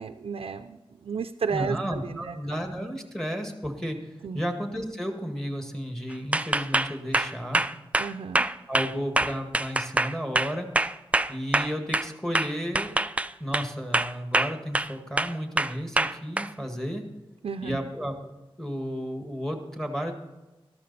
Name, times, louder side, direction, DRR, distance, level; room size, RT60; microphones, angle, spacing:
voice 1, 0.0-2.4 4.2-4.4 8.0-8.5 17.4-17.8, right 5 dB, 85° right, 8 dB, 0.5 m, -33 dB
voice 2, 1.5-4.0 4.3-7.6 8.7-10.7 11.3-12.9 13.4-17.0 17.6-18.1 18.6-20.1, equal, 5° left, 4 dB, 1.8 m, -33 dB
sound 1, 6.3-12.1 12.3-13.7 13.9-14.9 15.2-16.5, right 2 dB, 15° right, 0.3 m, -25 dB
13.0 x 13.0 x 4.2 m, 1.1 s
wide cardioid pair, 110°, 10 cm